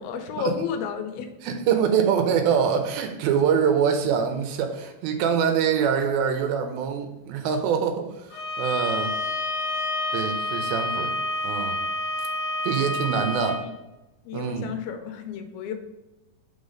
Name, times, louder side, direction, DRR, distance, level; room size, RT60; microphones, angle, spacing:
voice 1, 0.0-1.3 13.4-13.7 14.3-15.7, left 6 dB, 90° left, 6 dB, 2.5 m, -32 dB
voice 2, 1.4-9.2 10.1-11.1 11.4-11.8 12.6-13.6 14.3-14.7, right 7 dB, 80° right, 6 dB, 2.4 m, -24 dB
Bowed string instrument, 8.3-13.6, left 1 dB, 70° left, 2.1 m, -28 dB
5.6 x 4.0 x 5.0 m, 1.0 s
omnidirectional pair, 4.4 m